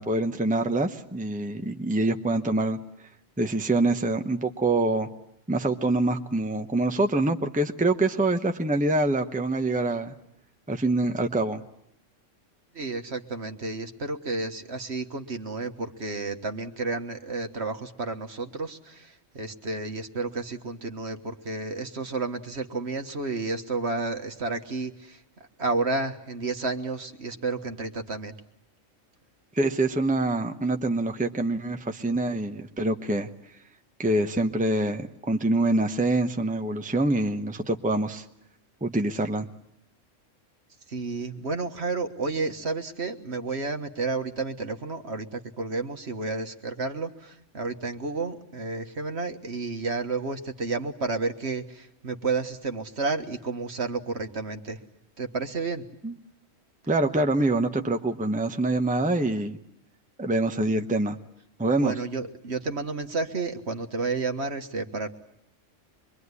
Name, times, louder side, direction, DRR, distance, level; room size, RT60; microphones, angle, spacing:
voice 1, 0.0-2.8 3.4-5.1 5.5-10.1 10.7-11.6 29.6-33.3 34.0-38.2 38.8-39.5 56.0-56.1 56.9-59.6 60.2-61.2 61.6-61.9, right 2 dB, 5° right, 5 dB, 1.0 m, -25 dB
voice 2, 12.7-25.2 25.6-28.3 40.9-54.8 55.2-55.8 61.8-65.1, right 3 dB, 60° right, 5 dB, 1.8 m, -31 dB
26.0 x 23.0 x 9.7 m, 0.77 s
omnidirectional pair, 1.3 m